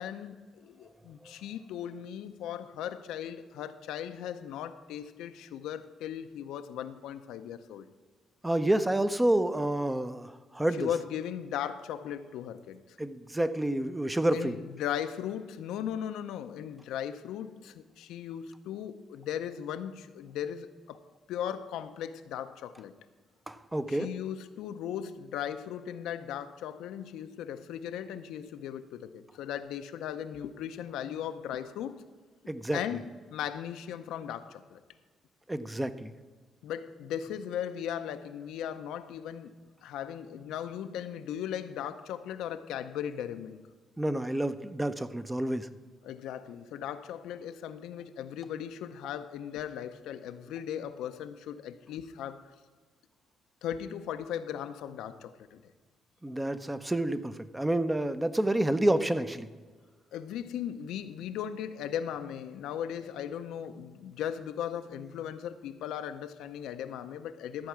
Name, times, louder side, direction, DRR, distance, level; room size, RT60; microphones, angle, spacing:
voice 1, 0.0-7.9 10.7-12.8 14.3-21.0 21.3-22.9 23.9-32.0 32.7-34.8 36.6-39.5 39.8-43.6 46.0-52.5 53.6-55.6 60.1-67.7, left 9 dB, 90° left, 0.6 m, -37 dB
voice 2, 8.4-10.9 13.0-14.6 23.5-24.1 32.5-32.8 35.5-36.1 44.0-45.7 56.2-59.5, right 1 dB, 10° right, 0.6 m, -29 dB
13.0 x 4.7 x 7.3 m
cardioid pair, 90°, 0 cm